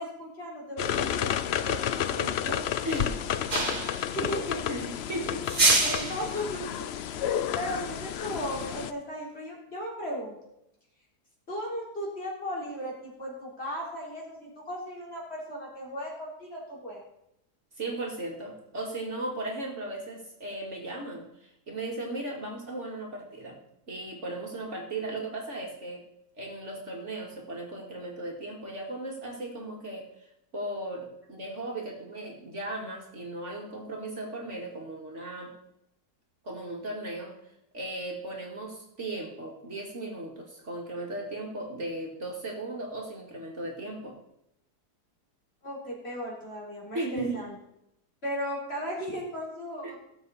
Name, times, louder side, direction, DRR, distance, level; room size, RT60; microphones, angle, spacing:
voice 1, 0.0-2.7 4.1-4.6 5.8-6.9 7.5-10.4 11.5-17.0 45.6-47.5 48.2-50.0, equal, 40° left, -4 dB, 3.9 m, -36 dB
sound 1, 0.8-8.9, left 9 dB, 80° left, 0.5 m, -31 dB
voice 2, 2.9-3.2 4.7-5.5 17.8-23.6 23.9-26.1 26.4-30.1 30.5-35.5 36.4-37.4 37.7-44.2 46.9-47.4 49.8-49.9, right 2 dB, 45° right, -1 dB, 2.3 m, -36 dB
sound 2, 3.5-4.1 5.4-6.3, right 2 dB, 30° right, 1.6 m, -25 dB
18.0 x 7.3 x 4.1 m, 0.80 s
omnidirectional pair, 1.7 m